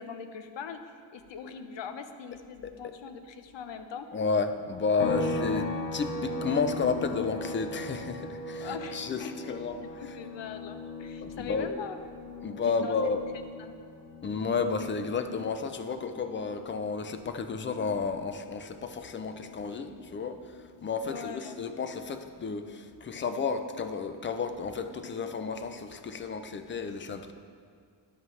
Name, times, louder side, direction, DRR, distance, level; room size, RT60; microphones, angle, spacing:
voice 1, 0.0-4.1 5.1-5.6 8.6-9.5 9.8-12.0 12.7-13.1 13.6-13.8 21.0-21.6, left 7 dB, 70° left, 8 dB, 0.9 m, -41 dB
voice 2, 4.1-5.6 5.9-9.8 11.2-11.7 12.4-13.2 14.2-20.4 20.8-27.3, left 5 dB, 25° left, 8 dB, 0.5 m, -32 dB
sound 1, 5.0-18.5 18.9-21.1, left 2 dB, 90° left, 1.1 m, -39 dB
13.0 x 11.0 x 3.2 m, 2.1 s
wide cardioid pair, 170°, 45 cm